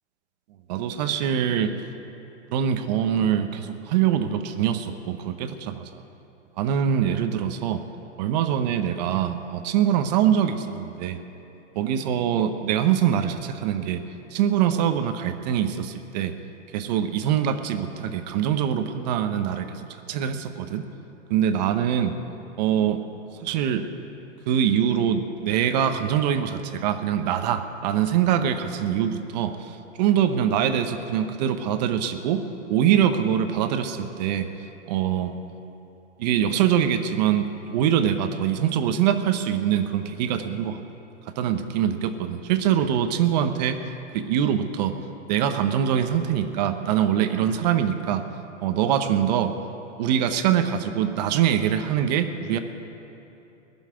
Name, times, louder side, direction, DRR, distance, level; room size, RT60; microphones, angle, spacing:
voice 1, 0.7-1.8 2.5-6.0 6.6-7.8 8.2-11.2 11.8-14.0 14.3-16.3 16.7-20.8 21.3-22.1 22.6-23.0 23.4-23.9 24.5-32.4 32.7-34.5 34.9-35.3 36.2-40.8 41.3-43.8 44.1-44.9 45.3-48.2 48.6-49.5 50.0-52.6, right 9 dB, 35° right, 8 dB, 0.8 m, -24 dB
19.0 x 7.2 x 9.4 m, 2.9 s
hypercardioid pair, 155°, 37 cm